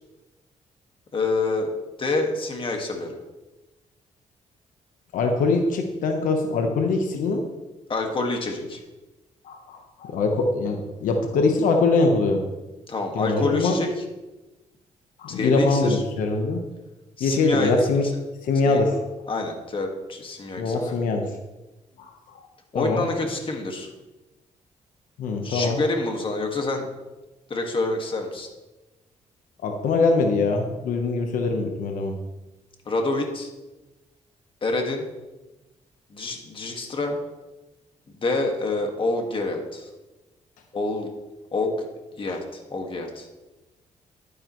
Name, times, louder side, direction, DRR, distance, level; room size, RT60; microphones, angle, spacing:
voice 1, 1.1-1.7 2.0-3.2 7.9-8.8 12.9-13.9 15.3-16.0 17.2-17.9 18.6-18.8 19.3-21.0 22.7-23.9 25.4-26.9 27.5-28.5 32.8-33.5 34.6-35.0 36.1-37.2 38.2-39.9 40.7-41.1 41.5-41.9 42.2-43.3, left 3 dB, 40° left, 3 dB, 1.8 m, -27 dB
voice 2, 5.1-7.4 9.4-12.4 13.1-13.8 15.2-16.6 17.2-18.0 18.4-19.0 20.6-21.3 22.0-22.4 22.7-23.1 25.2-25.8 29.6-32.2 42.3-42.4, left 3 dB, 90° left, 3 dB, 1.1 m, -23 dB
11.5 x 9.8 x 3.1 m, 1.1 s
cardioid pair, 90°, 13 cm